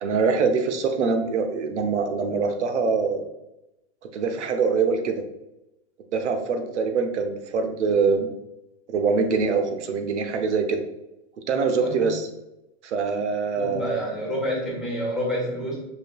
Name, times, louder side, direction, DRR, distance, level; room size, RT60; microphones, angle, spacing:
voice 1, 0.0-3.2 4.1-5.2 6.1-8.3 8.9-10.8 11.5-12.3 12.8-14.1, right 5 dB, 85° right, 6 dB, 0.8 m, -24 dB
voice 2, 11.8-12.1 13.6-15.8, equal, ahead, -5 dB, 1.2 m, -28 dB
5.1 x 2.8 x 2.3 m, 0.90 s
hypercardioid pair, 140°, 34 cm